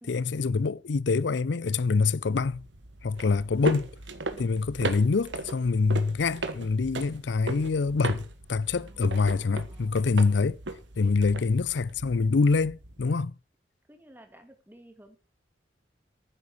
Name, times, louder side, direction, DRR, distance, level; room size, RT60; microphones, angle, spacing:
voice 1, 0.1-2.6 3.0-3.9 4.4-10.6 11.0-13.3, left 4 dB, 75° left, 0.5 m, -25 dB
sound 1, 2.1-13.1, right 2 dB, 90° right, 1.6 m, -38 dB
voice 2, 3.2-3.6 4.3-4.5 8.8-10.0 11.0-11.2 13.0-13.2 13.9-15.2, right 1 dB, 10° right, 2.3 m, -54 dB
12.0 x 9.6 x 4.6 m
head